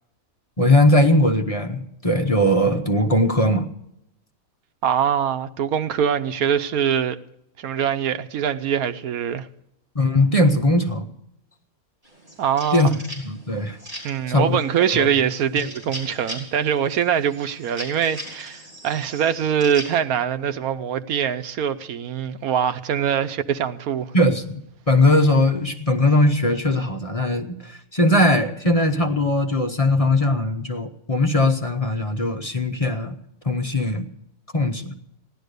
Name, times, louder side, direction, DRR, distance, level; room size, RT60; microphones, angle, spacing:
voice 1, 0.6-3.7 9.9-11.1 12.7-12.9 13.2-13.8 14.3-14.6 14.9-15.1 24.1-24.5 24.9-33.2 33.4-34.1 34.5-34.9, left 1 dB, 30° left, 0.9 m, -19 dB
voice 2, 4.8-7.2 7.6-9.5 12.4-13.0 14.0-24.1, right 8 dB, 85° right, 1.3 m, -23 dB
sound 1, 12.0-20.0, equal, 35° right, 4.1 m, -39 dB
16.0 x 11.5 x 6.7 m
omnidirectional pair, 1.5 m